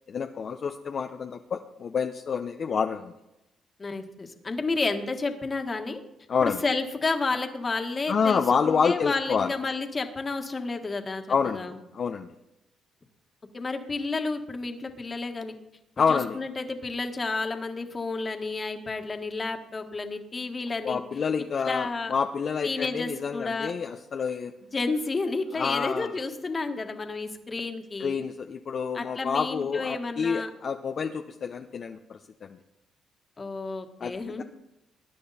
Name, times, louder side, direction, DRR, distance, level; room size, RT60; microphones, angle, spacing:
voice 1, 0.1-3.1 6.3-6.6 8.1-9.5 11.3-12.3 16.0-16.4 20.8-24.5 25.5-26.1 28.0-32.6 34.0-34.1 34.4-34.5, left 6 dB, 50° left, 4 dB, 0.8 m, -28 dB
voice 2, 3.8-6.0 6.4-11.2 11.5-11.8 13.5-15.5 16.1-21.0 21.6-22.1 22.6-23.7 24.7-28.2 28.9-30.5 33.4-34.4, left 3 dB, 30° left, 5 dB, 1.8 m, -31 dB
20.5 x 9.9 x 4.3 m, 0.90 s
cardioid pair, 90°, 0 cm